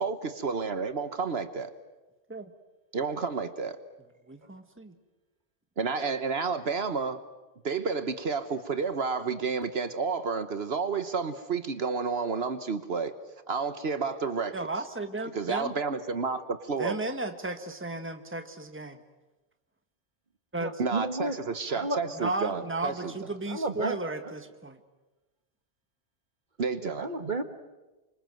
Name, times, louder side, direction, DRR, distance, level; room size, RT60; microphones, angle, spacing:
voice 1, 0.0-1.7 2.9-3.8 5.8-7.2 7.6-13.2 13.5-14.5 15.3-17.0 20.8-23.1 26.6-27.1, right 5 dB, 70° right, 10 dB, 1.4 m, -30 dB
voice 2, 4.3-4.9 14.5-15.7 16.8-19.0 20.5-20.8 22.2-24.8, right 2 dB, 10° right, 7 dB, 1.5 m, -34 dB
voice 3, 20.6-21.4 21.7-22.3 23.5-24.0 26.8-27.4, right 2 dB, 45° right, 9 dB, 1.7 m, -32 dB
28.5 x 25.5 x 7.7 m, 1.1 s
omnidirectional pair, 1.1 m